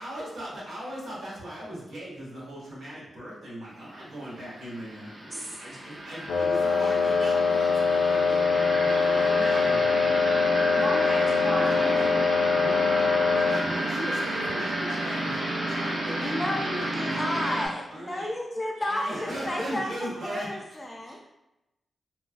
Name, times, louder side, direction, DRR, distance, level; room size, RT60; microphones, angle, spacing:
voice 1, 0.0-10.8 11.1-11.3 11.7-12.1 12.6-12.8 13.5-17.5 17.9-18.3 18.8-20.6 20.9-21.2, right 1 dB, 85° right, -7 dB, 1.2 m, -38 dB
sound 1, 4.1-17.7, right 1 dB, 60° right, 0.7 m, -31 dB
voice 2, 5.3-5.8 10.7-13.4, equal, 30° right, -4 dB, 0.8 m, -37 dB
Wind instrument woodwind instrument, 6.3-13.7, left 5 dB, 90° left, 0.4 m, -23 dB
voice 3, 10.8-11.5 16.2-21.2, left 1 dB, 25° left, 0 dB, 0.4 m, -33 dB
3.1 x 2.3 x 2.4 m, 0.94 s
cardioid pair, 75°, 0 cm